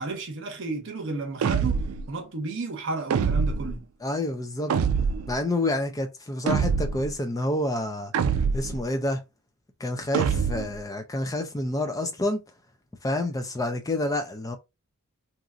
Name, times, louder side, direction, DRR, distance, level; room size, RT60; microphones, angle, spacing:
voice 1, 0.0-3.9, right 3 dB, 60° right, 0.8 m, -33 dB
sound 1, 1.4-2.0 3.1-3.8 4.7-5.3 6.5-7.1 8.1-8.8 10.1-10.8, right 6 dB, 80° right, 0.3 m, -25 dB
voice 2, 4.0-4.7 5.3-8.1 8.5-9.2 9.8-12.4 13.0-14.6, left 1 dB, 15° left, 0.4 m, -28 dB
2.9 x 2.5 x 2.4 m
head